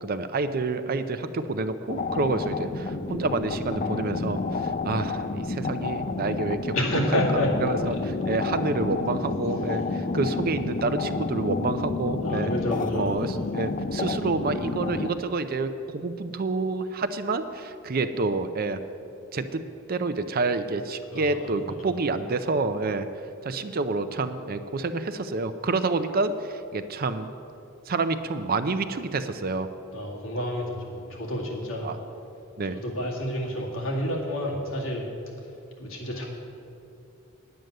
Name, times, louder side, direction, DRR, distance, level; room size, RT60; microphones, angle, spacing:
voice 1, 0.0-6.8 7.1-12.5 12.9-18.8 19.3-19.6 19.9-23.1 23.4-27.3 27.9-29.7 31.8-32.0 32.6-32.8, right 3 dB, 45° right, 10 dB, 0.5 m, -28 dB
sound 1, 1.9-15.1, left 3 dB, 40° left, 0.5 m, -30 dB
voice 2, 6.7-7.5 12.2-13.1 21.1-21.5 29.9-31.9 32.8-35.1 35.8-36.2, equal, 75° left, -3 dB, 2.2 m, -29 dB
9.5 x 9.1 x 6.5 m, 2.7 s
head